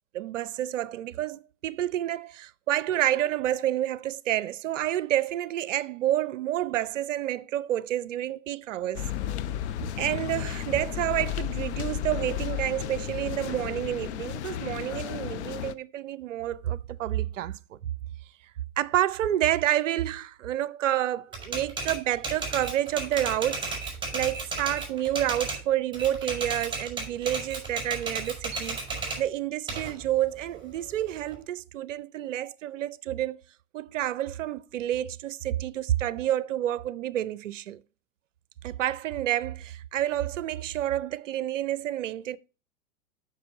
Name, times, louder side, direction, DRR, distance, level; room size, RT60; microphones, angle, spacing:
voice 1, 0.1-9.1 10.0-17.6 18.8-28.8 29.2-33.4 33.7-37.8 38.6-42.4, right 12 dB, 60° right, 0.6 m, -29 dB
sound 1, 8.9-15.7, left 11 dB, 50° left, 0.6 m, -33 dB
Typewriter, 21.3-25.6 25.9-29.2 29.7-31.3, right 3 dB, 10° right, 4.7 m, -33 dB
6.7 x 6.2 x 5.3 m
figure-of-eight pair, 105°, 42 cm